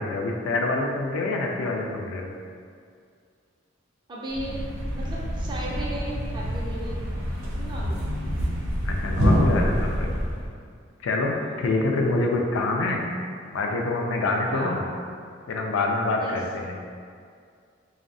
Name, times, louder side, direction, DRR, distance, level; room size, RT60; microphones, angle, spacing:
voice 1, 0.0-2.3 8.8-10.2 11.0-13.0 13.5-14.8 15.5-16.7, left 2 dB, 80° left, 1 dB, 0.3 m, -26 dB
voice 2, 4.1-4.6 4.9-7.1 7.6-8.0 11.4-11.7 14.5-14.7 16.2-16.4, right 1 dB, 25° right, -5 dB, 0.3 m, -35 dB
Thump thud, 4.3-10.5, equal, 80° right, 0.6 m, -26 dB
2.6 x 2.0 x 2.6 m, 2.2 s
head